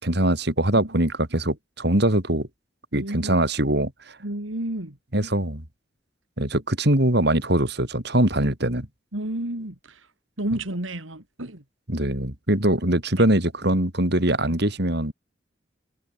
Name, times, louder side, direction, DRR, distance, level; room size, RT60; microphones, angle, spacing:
voice 1, 0.0-2.5 2.9-4.2 5.1-5.6 6.4-8.9 11.9-15.1, right 1 dB, 55° right, 4.3 m, -22 dB
voice 2, 2.9-3.4 4.2-5.0 9.1-10.1 10.4-11.6, right 1 dB, 80° right, 3.5 m, -31 dB
head